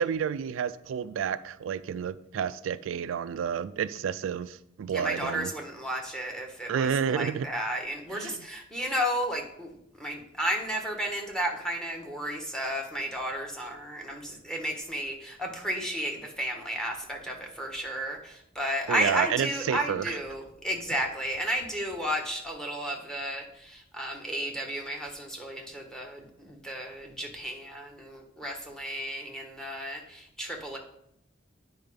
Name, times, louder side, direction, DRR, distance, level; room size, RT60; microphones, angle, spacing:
voice 1, 0.0-5.5 6.7-7.5 8.1-8.4 18.9-20.2, right 7 dB, 85° right, 0.3 m, -30 dB
voice 2, 4.9-30.8, equal, 5° left, 1.4 m, -33 dB
9.3 x 4.7 x 5.1 m
head